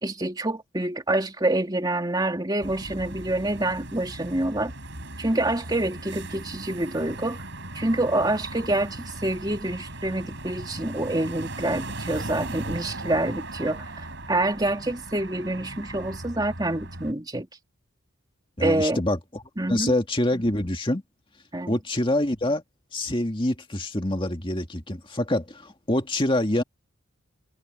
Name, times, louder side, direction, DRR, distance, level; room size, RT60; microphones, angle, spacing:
voice 1, 0.0-4.7 5.2-7.4 7.7-17.5 18.6-19.0 19.6-19.9 21.5-21.7, right 1 dB, 20° right, 2.6 m, -27 dB
sound 1, 2.6-17.1, right 2 dB, 55° right, 6.4 m, -38 dB
voice 2, 18.6-19.4 19.7-21.0 21.7-22.6 22.9-26.6, left 1 dB, 25° left, 2.1 m, -25 dB
head